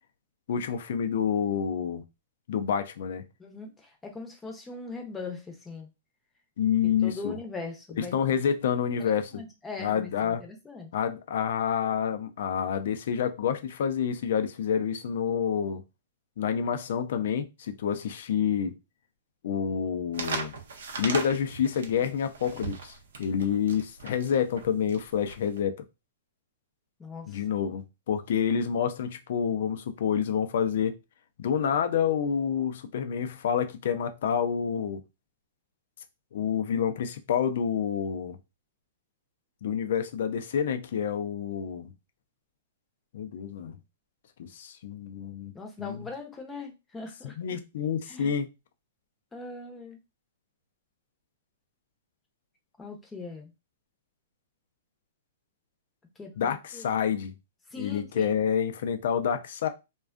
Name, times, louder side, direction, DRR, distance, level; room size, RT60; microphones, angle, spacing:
voice 1, 0.5-2.0 2.5-3.2 6.6-7.4 8.0-9.3 9.8-10.4 10.9-15.8 16.4-18.8 19.4-20.5 21.0-25.8 27.3-31.0 31.4-35.0 36.3-38.4 39.6-41.9 43.1-43.8 44.4-46.0 47.2-48.5 56.4-57.3 57.8-59.7, left 8 dB, 65° left, 0.4 m, -28 dB
voice 2, 3.4-5.9 6.8-8.4 9.0-10.9 27.0-27.4 45.5-47.4 48.1-48.4 49.3-50.0 52.8-53.5 56.2-56.9 57.7-58.4, left 4 dB, 15° left, 0.6 m, -41 dB
sound 1, 20.1-25.6, right 4 dB, 80° right, 0.5 m, -37 dB
2.4 x 2.2 x 2.4 m
hypercardioid pair, 125°, 0 cm